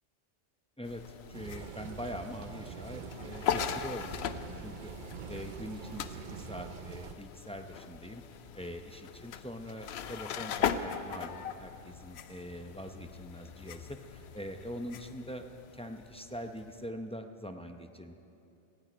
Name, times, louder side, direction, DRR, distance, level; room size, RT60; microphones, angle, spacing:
sound 1, 0.8-16.9, left 8 dB, 70° left, 0.9 m, -40 dB
voice 1, 0.8-4.9 5.3-8.2 8.5-15.5 15.7-18.1, equal, 5° left, 5 dB, 0.5 m, -43 dB
sound 2, 1.3-7.1, right 7 dB, 55° right, 0.6 m, -45 dB
17.5 x 15.5 x 5.1 m, 2.8 s
omnidirectional pair, 1.2 m